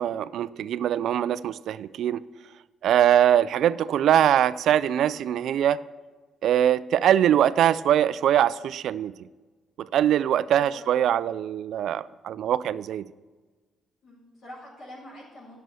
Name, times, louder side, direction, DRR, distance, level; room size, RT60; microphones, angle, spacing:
voice 1, 0.0-2.2 2.8-5.8 6.4-9.3 9.8-13.1, right 10 dB, 75° right, 17 dB, 0.4 m, -22 dB
voice 2, 10.5-11.0 14.0-15.6, equal, 65° left, -6 dB, 4.2 m, -46 dB
11.0 x 6.8 x 6.2 m, 1.3 s
cardioid pair, 90°, 0 cm